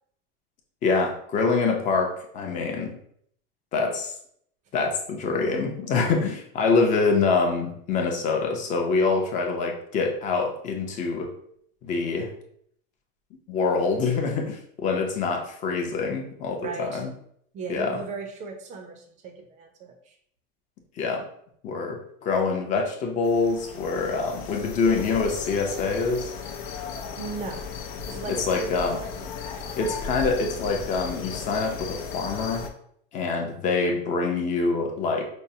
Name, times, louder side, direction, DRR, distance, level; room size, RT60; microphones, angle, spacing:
voice 1, 0.8-3.0 3.7-4.1 4.7-11.3 11.8-12.3 13.5-17.1 17.7-18.0 21.0-21.3 21.6-26.3 28.3-29.0 29.7-32.6 33.1-35.3, left 4 dB, 25° left, 2 dB, 0.5 m, -25 dB
voice 2, 16.6-17.0 17.5-20.2 27.2-27.6 28.1-29.3, right 4 dB, 25° right, 4 dB, 0.5 m, -37 dB
sound 1, 23.2-32.7, left 6 dB, 80° left, 0.6 m, -36 dB
5.4 x 2.0 x 2.6 m, 0.67 s
supercardioid pair, 150°, 30 cm